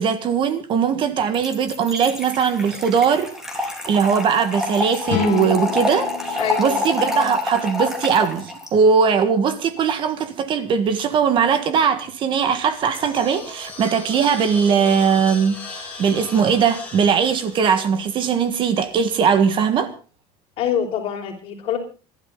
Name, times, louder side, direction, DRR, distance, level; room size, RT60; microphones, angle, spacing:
voice 1, 0.0-3.3 3.6-19.9, right 6 dB, 40° right, 1.7 m, -20 dB
Trickle dribble / Fill (with liquid), 1.3-8.7, left 2 dB, 5° right, 3.7 m, -27 dB
sound 1, 5.1-8.4, left 14 dB, 60° left, 1.5 m, -30 dB
voice 2, 6.4-6.9 20.6-21.8, left 9 dB, 45° left, 5.2 m, -25 dB
sound 2, 12.5-18.8, left 3 dB, 10° left, 5.6 m, -38 dB
26.5 x 12.5 x 3.9 m
cardioid pair, 165°, 13 cm